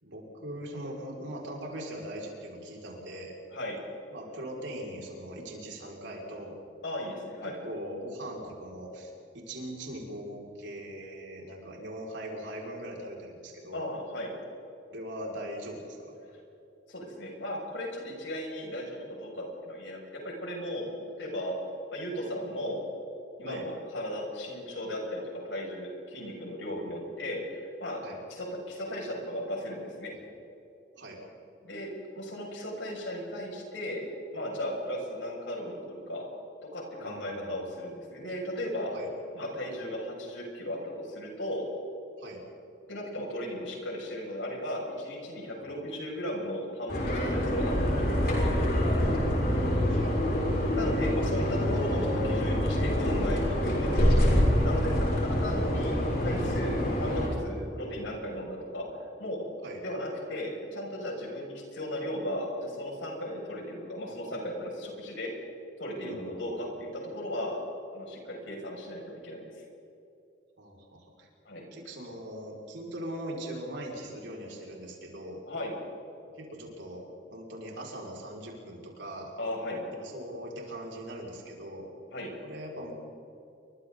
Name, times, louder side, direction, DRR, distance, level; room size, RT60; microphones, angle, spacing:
voice 1, 0.0-3.3 4.1-6.6 7.5-13.8 14.9-16.1 23.5-23.7 28.0-28.2 30.9-31.2 37.0-37.8 38.9-39.1 42.2-42.4 49.5-50.1 59.6-59.8 66.0-66.5 70.6-71.3 71.7-75.4 76.3-77.0 77.3-79.3 79.9-81.9 82.4-82.9, right 1 dB, 75° right, -2 dB, 5.9 m, -41 dB
voice 2, 6.8-7.6 13.7-14.3 16.9-20.9 21.2-21.6 21.9-22.8 23.4-28.0 28.3-30.1 31.6-31.9 32.2-34.0 34.3-36.3 36.7-38.9 39.3-41.6 42.9-48.5 50.7-56.0 56.2-58.9 59.2-59.4 59.8-65.3 65.8-67.6 67.9-69.6 71.5-71.7 75.5-75.7 79.4-79.8 82.1-82.3, left 1 dB, 80° left, -1 dB, 6.9 m, -36 dB
sound 1, 46.9-57.3, equal, 50° left, 6.1 m, -26 dB
29.0 x 24.5 x 4.1 m, 2.9 s
head